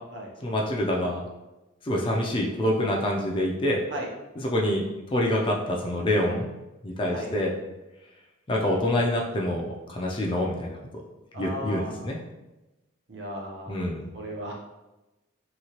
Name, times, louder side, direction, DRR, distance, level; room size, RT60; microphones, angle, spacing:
voice 1, 0.4-1.2 1.8-3.8 4.4-4.8 5.1-6.5 6.8-7.5 8.5-11.0 11.4-12.2 13.7-14.0, left 1 dB, 25° left, -1 dB, 0.4 m, -26 dB
voice 2, 11.3-12.1 13.1-13.8 14.1-14.5, right 1 dB, 65° right, -1 dB, 0.7 m, -36 dB
3.0 x 2.8 x 2.9 m, 1.0 s
head